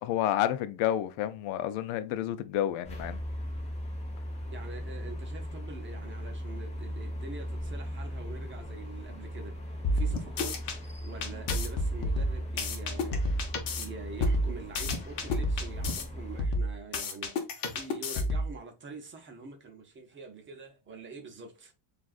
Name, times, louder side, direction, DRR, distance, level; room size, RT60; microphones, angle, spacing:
voice 1, 0.0-3.2, left 11 dB, 75° left, 0.6 m, -30 dB
sound 1, 2.8-16.4, equal, 15° left, 1.1 m, -38 dB
voice 2, 4.5-9.6 9.9-10.7 11.0-13.4 13.7-17.4 17.7-21.7, right 3 dB, 25° right, 0.7 m, -45 dB
sound 2, 9.8-10.8 11.2-13.9 14.2-16.0 16.4-18.5, left 1 dB, 45° left, 1.0 m, -30 dB
7.4 x 2.5 x 2.4 m
cardioid pair, 170°, 48 cm